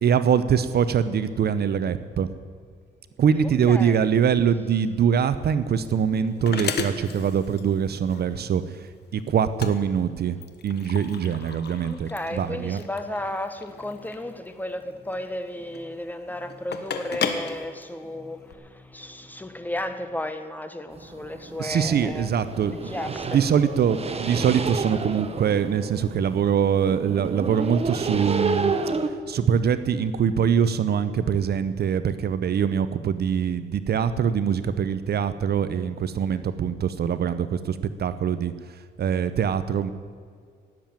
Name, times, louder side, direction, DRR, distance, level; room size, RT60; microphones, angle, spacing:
voice 1, 0.0-2.3 3.2-8.9 9.1-10.4 10.6-12.8 21.6-22.9 23.3-28.7 29.3-39.9, right 7 dB, 55° right, 12 dB, 0.7 m, -23 dB
voice 2, 3.4-4.0 11.9-22.3 22.7-23.4, left 1 dB, 10° left, 8 dB, 1.3 m, -34 dB
sound 1, 5.2-18.5, left 6 dB, 55° left, 1.4 m, -36 dB
sound 2, 20.9-29.1, right 4 dB, 30° right, 1.2 m, -31 dB
18.0 x 7.6 x 8.8 m, 2.1 s
cardioid pair, 90°, 20 cm